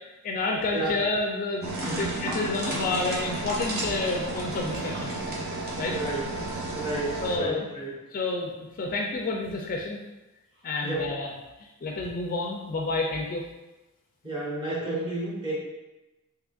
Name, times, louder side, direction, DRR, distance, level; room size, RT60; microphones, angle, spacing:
voice 1, 0.2-5.2 5.8-6.0 7.2-7.7 8.1-8.5 8.8-10.0 10.6-11.3 11.8-13.4, left 3 dB, 40° left, 0 dB, 0.4 m, -29 dB
sound 1, 1.6-7.4, right 2 dB, 45° right, 0.7 m, -32 dB
voice 2, 5.9-6.3 6.7-7.9 10.8-11.1 14.2-15.6, right 2 dB, 25° right, -8 dB, 1.2 m, -31 dB
3.7 x 2.8 x 2.4 m, 1.0 s
head